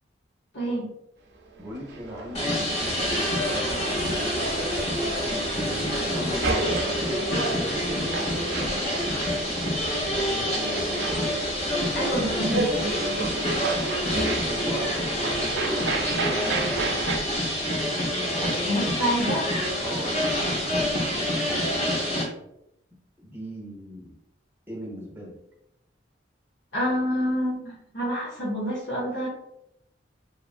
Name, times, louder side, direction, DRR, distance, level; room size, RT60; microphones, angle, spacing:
voice 1, 0.5-0.9 11.9-12.7 18.7-19.4 26.7-29.3, equal, 85° left, -7 dB, 0.8 m, -27 dB
voice 2, 1.6-4.4 5.5-9.0 10.2-10.9 14.4-14.9 15.6-17.0 18.3-19.4 19.8-21.8 23.2-24.1 24.7-25.3, equal, 10° right, -2 dB, 0.7 m, -39 dB
sound 1, 1.6-17.2, right 3 dB, 70° right, 0.4 m, -32 dB
sound 2, 2.3-22.2, equal, 35° left, 0.7 m, -27 dB
2.9 x 2.5 x 2.4 m, 0.83 s
head